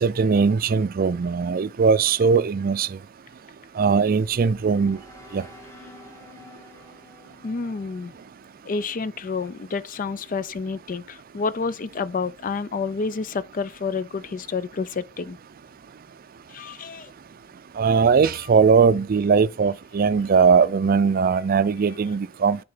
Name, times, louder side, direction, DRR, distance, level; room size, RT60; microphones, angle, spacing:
voice 1, 0.0-2.9 3.8-5.0 5.3-5.4 17.8-22.6, right 5 dB, 45° right, 0.4 m, -19 dB
sound 1, 4.0-9.1, left 1 dB, 15° left, 2.2 m, -49 dB
voice 2, 7.4-8.1 8.7-15.4 16.5-17.1, left 4 dB, 45° left, 0.4 m, -29 dB
9.6 x 4.1 x 3.9 m
head